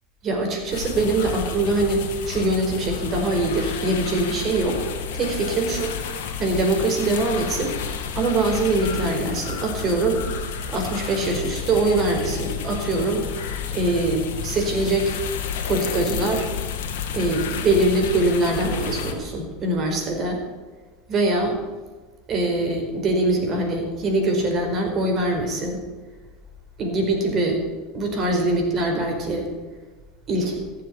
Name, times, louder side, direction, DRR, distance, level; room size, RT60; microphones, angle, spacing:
voice 1, 0.2-4.8 5.1-5.9 6.4-7.7 8.1-10.2 10.7-13.3 13.7-14.2 14.4-15.1 15.6-16.5 17.1-20.4 21.1-21.6 22.3-25.8 26.8-27.6 27.9-29.5 30.3-30.6, right 2 dB, 40° right, 3 dB, 4.8 m, -23 dB
sound 1, 0.7-19.1, left 6 dB, 75° left, 2.1 m, -31 dB
15.0 x 7.7 x 9.6 m, 1.3 s
hypercardioid pair, 95°, 0 cm